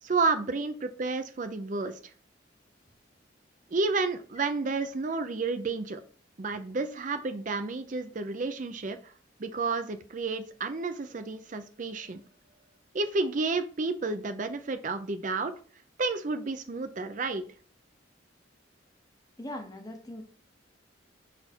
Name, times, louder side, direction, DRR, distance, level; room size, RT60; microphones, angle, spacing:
voice 1, 0.0-2.0 3.7-6.0 6.4-9.1 9.4-12.2 12.9-15.5 16.0-17.4, right 3 dB, 40° right, 9 dB, 0.5 m, -31 dB
voice 2, 19.4-20.2, left 1 dB, 20° left, 5 dB, 0.8 m, -40 dB
5.3 x 4.1 x 4.4 m, 0.42 s
head